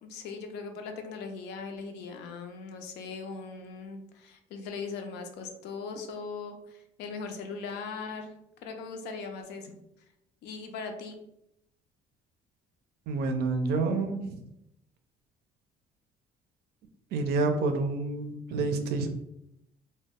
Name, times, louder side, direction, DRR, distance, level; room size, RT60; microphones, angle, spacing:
voice 1, 0.0-8.3 8.6-9.8 10.4-11.2, left 4 dB, 80° left, 5 dB, 0.5 m, -39 dB
voice 2, 13.1-14.4 17.1-19.1, right 3 dB, 75° right, 7 dB, 0.4 m, -28 dB
2.1 x 2.0 x 3.4 m, 0.83 s
cardioid pair, 110°, 17 cm